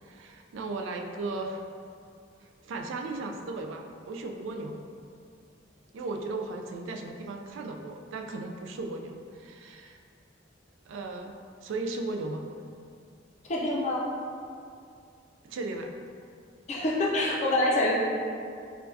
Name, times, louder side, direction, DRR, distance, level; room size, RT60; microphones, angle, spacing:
voice 1, 0.0-1.6 2.4-4.8 5.9-10.0 10.9-12.5 15.4-15.9, right 2 dB, 90° right, 3 dB, 0.3 m, -36 dB
voice 2, 13.5-14.0 16.7-17.9, left 1 dB, 40° left, -4 dB, 0.5 m, -26 dB
4.5 x 2.2 x 2.6 m, 2.3 s
head